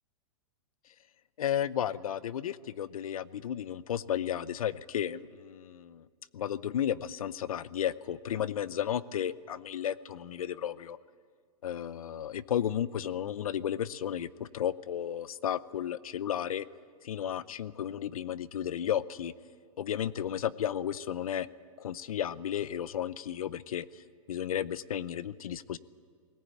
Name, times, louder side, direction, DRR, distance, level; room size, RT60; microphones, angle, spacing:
voice 1, 1.4-6.1 6.3-11.0 11.6-16.7 17.0-19.3 19.8-21.5 21.8-25.8, left 10 dB, 85° left, 18 dB, 0.7 m, -33 dB
19.5 x 18.5 x 8.7 m, 2.1 s
hypercardioid pair, 170°, 18 cm